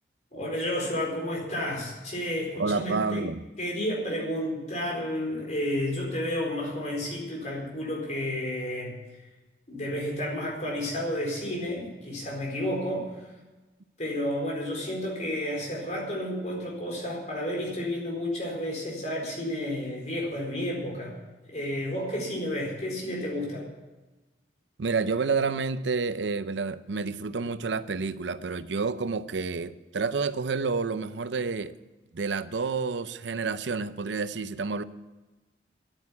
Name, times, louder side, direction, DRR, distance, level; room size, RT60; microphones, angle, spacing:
voice 1, 0.3-3.3 3.6-9.0 9.7-13.3 14.0-21.1 21.5-23.7, left 1 dB, 40° left, 4.3 m, -31 dB
voice 2, 2.6-3.4 24.8-31.7 32.1-34.8, right 4 dB, 80° right, 0.6 m, -29 dB
10.5 x 9.0 x 9.6 m
head